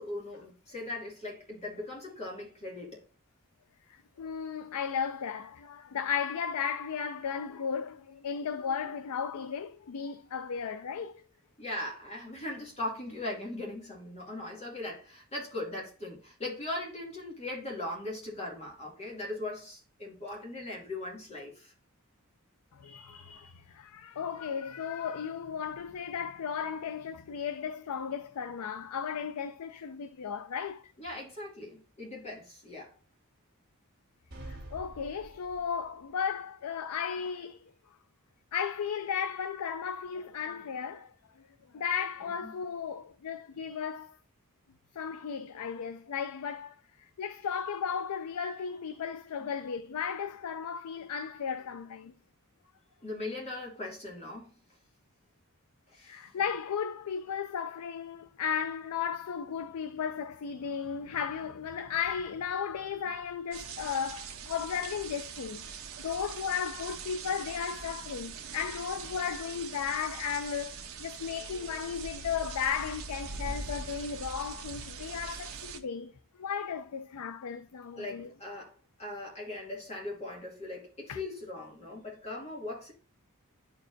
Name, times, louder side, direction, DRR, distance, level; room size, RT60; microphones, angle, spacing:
voice 1, 0.0-3.0 11.6-21.7 31.0-33.0 42.2-42.5 49.4-49.5 53.0-54.5 55.9-56.2 78.0-82.9, left 2 dB, 30° left, 2.4 m, -39 dB
voice 2, 3.9-11.2 22.7-30.9 34.5-37.7 38.5-41.4 41.7-44.2 44.9-52.1 56.0-76.1 76.4-78.3 81.1-81.2, left 7 dB, 90° left, 0.4 m, -35 dB
sound 1, 34.3-36.0, right 1 dB, 45° right, 1.9 m, -46 dB
sound 2, 63.5-75.8, right 5 dB, 65° right, 0.9 m, -42 dB
10.5 x 4.5 x 2.6 m
head